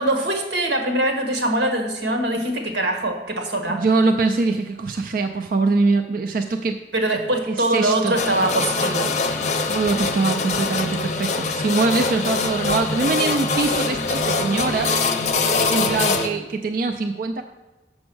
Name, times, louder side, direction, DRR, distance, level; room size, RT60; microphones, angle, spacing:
voice 1, 0.0-3.8 6.9-9.1, right 1 dB, 85° right, 3 dB, 1.5 m, -23 dB
voice 2, 3.7-6.8 7.5-8.2 9.7-14.9 15.7-17.4, right 3 dB, 50° right, 6 dB, 0.4 m, -23 dB
sound 1, 8.2-16.3, left 3 dB, 40° left, 0.6 m, -23 dB
7.1 x 6.2 x 6.1 m, 1.2 s
head